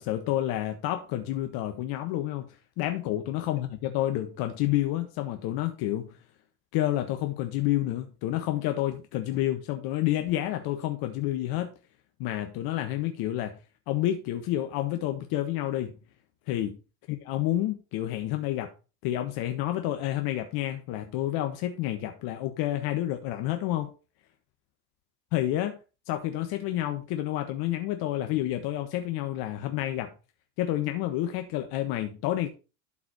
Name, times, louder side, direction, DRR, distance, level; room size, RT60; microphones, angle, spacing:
voice 1, 0.0-6.2 6.7-11.7 12.2-13.6 13.9-16.0 16.5-16.8 17.1-18.7 19.0-23.9 25.3-25.8 26.1-30.1 30.6-32.5, left 13 dB, 50° left, 1.4 m, -29 dB
12.0 x 4.9 x 4.4 m
hypercardioid pair, 80°, 47 cm